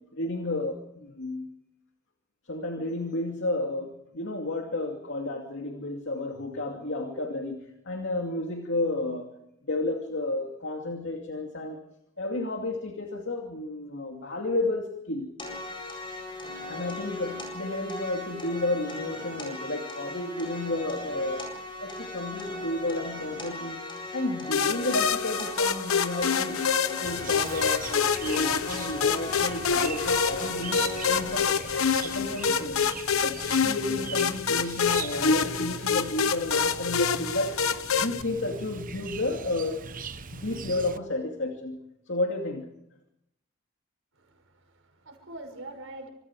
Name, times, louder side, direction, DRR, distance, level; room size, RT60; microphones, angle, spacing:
voice 1, 0.1-1.5 2.4-9.3 9.7-11.8 12.2-15.3 16.7-21.5 21.8-23.8 24.1-26.7 27.0-32.8 33.2-37.6 37.9-39.8 40.3-42.7, left 2 dB, 60° left, 3 dB, 2.6 m, -32 dB
sound 1, 15.4-31.4, left 2 dB, 25° left, 7.9 m, -38 dB
sound 2, 24.5-38.2, left 6 dB, 85° left, 1.0 m, -27 dB
Chirp tweet, 27.0-41.0, right 5 dB, 40° right, 1.0 m, -41 dB
voice 2, 44.1-46.1, right 2 dB, 70° right, 4 dB, 6.2 m, -44 dB
27.0 x 26.5 x 4.8 m, 0.80 s
head